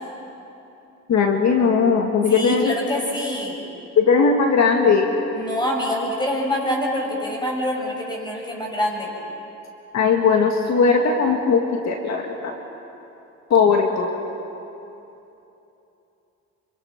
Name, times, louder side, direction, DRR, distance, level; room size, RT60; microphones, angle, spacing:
voice 1, 1.1-2.7 4.0-5.1 9.9-12.5 13.5-14.1, left 5 dB, 60° left, 2 dB, 1.9 m, -18 dB
voice 2, 2.3-3.6 5.3-9.1, left 1 dB, 15° left, -1 dB, 7.0 m, -25 dB
26.5 x 25.0 x 5.9 m, 2.9 s
cardioid pair, 90°, 30 cm